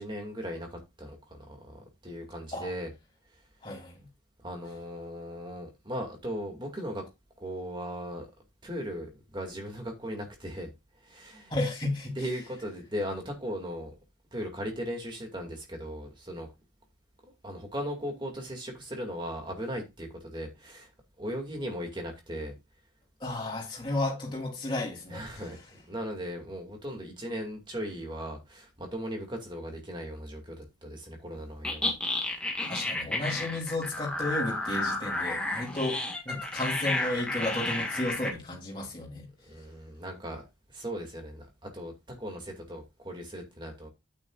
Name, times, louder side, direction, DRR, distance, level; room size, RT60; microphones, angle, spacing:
voice 1, 0.0-2.9 3.3-3.4 4.4-7.1 7.4-8.3 8.6-10.7 11.0-11.5 12.2-13.9 14.3-16.5 17.2-20.9 21.2-22.5 25.1-31.9 32.2-32.4 39.4-40.4 40.7-43.9, equal, 25° right, 2.3 m, -38 dB
voice 2, 3.6-4.1 11.5-12.2 23.2-25.5 32.7-36.0 36.2-39.3, left 2 dB, 25° left, 3.3 m, -33 dB
sound 1, 31.6-38.3, left 2 dB, 5° left, 1.7 m, -31 dB
9.3 x 8.9 x 2.5 m
head